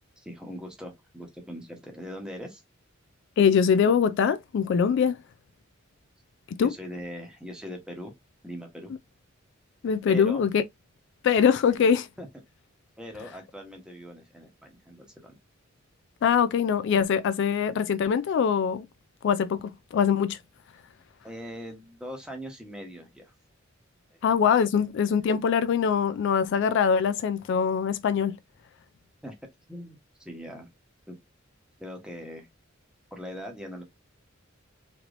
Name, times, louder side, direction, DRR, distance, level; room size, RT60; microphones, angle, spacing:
voice 1, 0.2-2.6 6.6-8.1 8.4-8.9 10.1-10.4 12.2-12.3 13.0-15.4 21.2-23.3 24.1-24.2 29.2-29.3 29.7-30.0 30.2-30.7 31.1-31.2 31.8-32.5 33.1-33.8, equal, 5° right, 0.9 m, -40 dB
voice 2, 3.4-5.2 6.5-6.7 9.8-10.6 11.2-12.1 16.2-18.9 19.2-20.4 24.2-28.4, left 7 dB, 60° left, 0.3 m, -23 dB
3.2 x 2.9 x 2.5 m
head